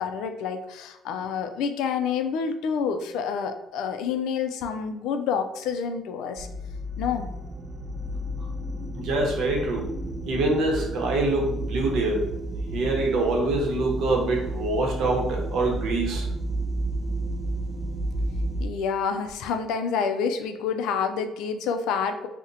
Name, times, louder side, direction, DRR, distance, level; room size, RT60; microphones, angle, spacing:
voice 1, 0.0-6.5 7.0-7.3 18.6-22.3, left 6 dB, 85° left, 7 dB, 0.3 m, -28 dB
sound 1, 6.4-18.7, right 1 dB, 30° right, 0.3 m, -31 dB
voice 2, 8.9-9.9 10.3-12.3 12.7-16.3, right 2 dB, 65° right, 0 dB, 0.8 m, -25 dB
2.8 x 2.1 x 3.8 m, 0.91 s
cardioid pair, 145°, 0 cm